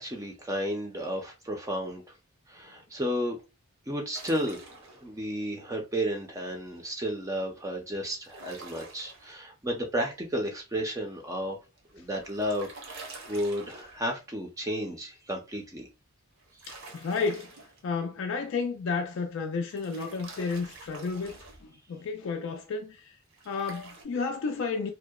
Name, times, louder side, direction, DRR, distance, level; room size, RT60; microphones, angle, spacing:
voice 1, 0.0-2.2 2.5-3.4 3.9-11.6 11.9-15.9, equal, 15° right, 0.5 m, -33 dB
sound 1, 4.1-5.1 8.2-9.3 11.8-14.2 16.4-17.8 19.7-21.6 23.3-24.0, right 3 dB, 65° right, 0.7 m, -47 dB
voice 2, 16.7-17.5 17.8-23.1 23.5-24.9, left 4 dB, 65° left, 0.3 m, -32 dB
2.7 x 2.1 x 2.2 m
head